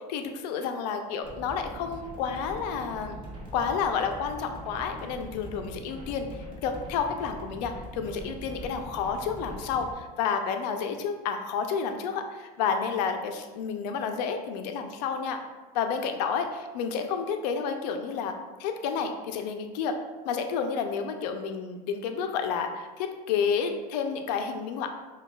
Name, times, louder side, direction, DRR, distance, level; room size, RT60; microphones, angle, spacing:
voice 1, 0.1-3.2 3.5-6.3 6.6-15.4 15.7-18.3 18.6-19.9 20.2-24.9, left 6 dB, 90° left, 6 dB, 0.5 m, -30 dB
sound 1, 1.2-9.9, right 1 dB, 25° right, 1.1 m, -42 dB
6.0 x 2.3 x 2.2 m, 1.3 s
supercardioid pair, 120°, 21 cm